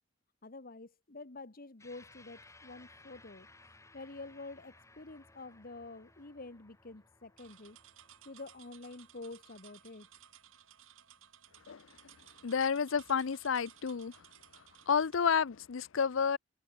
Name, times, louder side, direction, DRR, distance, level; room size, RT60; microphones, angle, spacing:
voice 1, 0.4-7.8 8.2-10.1, left 3 dB, 45° left, 1.3 m, -48 dB
sound 1, 1.8-10.5, left 2 dB, 15° left, 5.5 m, -61 dB
sound 2, 7.4-15.2, right 10 dB, 75° right, 3.9 m, -59 dB
voice 2, 12.4-14.1 14.9-16.4, left 6 dB, 70° left, 0.6 m, -30 dB
head